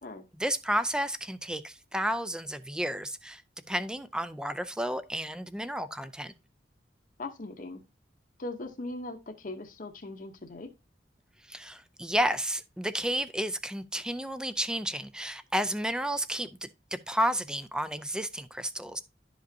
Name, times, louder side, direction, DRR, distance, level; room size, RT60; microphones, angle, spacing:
voice 1, 0.4-3.4 3.7-6.3 11.5-19.0, equal, 5° right, 0.4 m, -31 dB
voice 2, 7.2-7.8 8.4-10.7, left 2 dB, 50° left, 0.8 m, -39 dB
11.5 x 5.1 x 2.7 m
head